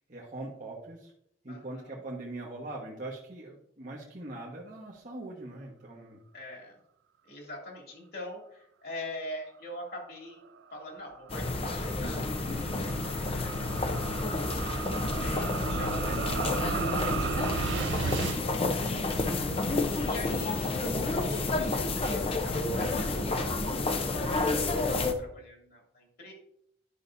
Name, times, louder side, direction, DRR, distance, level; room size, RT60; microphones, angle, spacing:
voice 1, 0.1-1.1 1.4-6.2 24.6-25.0, right 2 dB, 45° right, -5 dB, 1.4 m, -42 dB
voice 2, 1.5-2.0 6.3-6.7 7.2-10.4 10.7-12.4 12.8-14.1 15.2-19.5 20.0-23.6 24.2-26.3, left 1 dB, 60° left, -1 dB, 2.7 m, -44 dB
sound 1, 10.6-18.4, right 7 dB, 75° right, 0.3 m, -36 dB
sound 2, 11.3-25.1, left 2 dB, 35° left, 0.7 m, -30 dB
11.5 x 5.8 x 2.7 m, 0.72 s
head